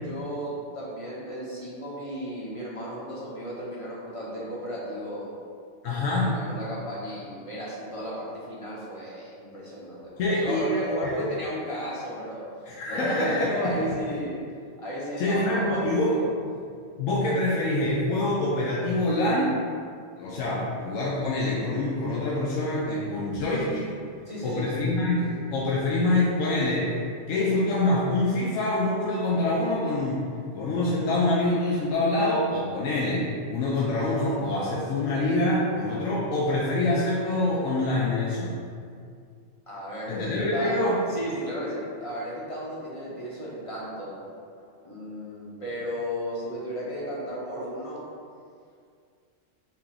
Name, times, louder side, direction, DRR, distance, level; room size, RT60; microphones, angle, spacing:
voice 1, 0.0-5.3 6.1-10.1 10.4-12.5 12.8-14.4 14.8-16.3 24.3-24.9 39.7-40.8 41.1-44.2 44.6-48.0, equal, 30° left, -6 dB, 0.8 m, -34 dB
voice 2, 5.8-6.3 10.2-10.6 11.0-11.1 12.7-13.7 15.2-16.1 17.0-19.6 20.2-23.9 24.4-26.9 27.3-30.2 30.5-38.5 40.1-41.0, left 2 dB, 80° left, -5 dB, 1.0 m, -25 dB
5.7 x 3.4 x 2.5 m, 2.2 s
omnidirectional pair, 1.3 m